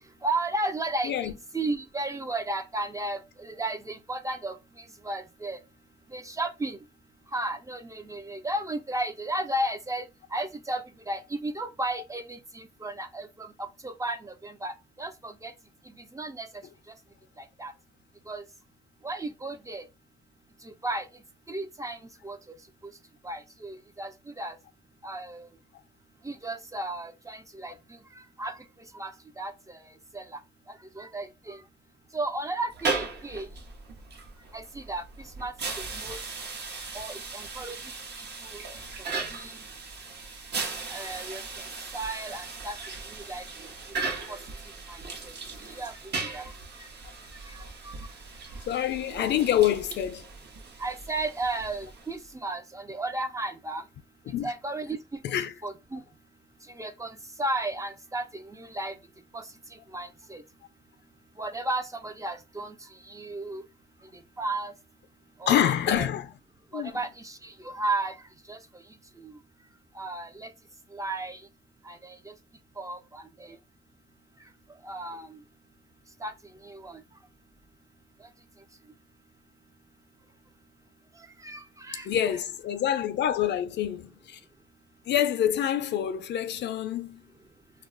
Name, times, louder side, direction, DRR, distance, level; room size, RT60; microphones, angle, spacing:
voice 1, 0.2-4.5 5.0-5.6 6.1-6.8 7.3-15.5 16.1-16.5 17.4-17.7 18.3-18.4 19.0-19.8 20.6-21.1 21.5-22.0 22.2-22.4 23.2-24.6 25.0-25.5 26.2-27.7 28.2-28.6 28.9-29.8 30.1-30.4 31.0-31.6 32.1-33.5 34.5-35.0 35.4-35.5 35.9-36.2 36.9-37.8 38.5-38.6 39.3-39.6 40.9-41.4 41.9-42.8 43.1-43.4 44.9-45.3 45.7-45.9 46.2-46.5 47.5-47.9 50.8-53.8 54.4-55.0 55.6-56.0 56.7-58.9 59.3-59.4 59.9-60.4 61.4-62.8 63.1-63.6 64.4-64.7 65.4-66.1 66.7-68.2 68.5-68.6 69.2-69.3 70.0-70.5 70.9-71.4 71.9-72.3 72.8-73.6 74.8-75.4 76.2-76.3 76.6-77.0 81.4-82.1, right 2 dB, 15° right, 0.4 m, -34 dB
sound 1, 32.7-52.3, right 4 dB, 60° right, 0.8 m, -37 dB
voice 2, 48.7-50.3 54.3-54.5 55.2-55.5 65.5-66.3 66.7-66.9 82.1-84.4 85.1-87.2, left 10 dB, 60° left, 0.4 m, -26 dB
2.3 x 2.1 x 3.6 m
cardioid pair, 90°, 20 cm